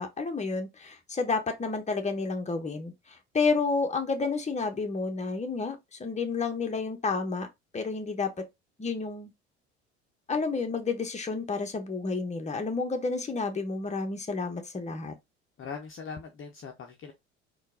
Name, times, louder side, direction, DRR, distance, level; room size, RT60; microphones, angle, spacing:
voice 1, 0.0-7.5 7.7-8.4 8.8-9.3 10.3-15.1, left 4 dB, 20° left, 1.2 m, -30 dB
voice 2, 15.6-17.1, left 5 dB, 40° left, 0.9 m, -41 dB
4.4 x 2.6 x 3.8 m
hypercardioid pair, 65°, 34 cm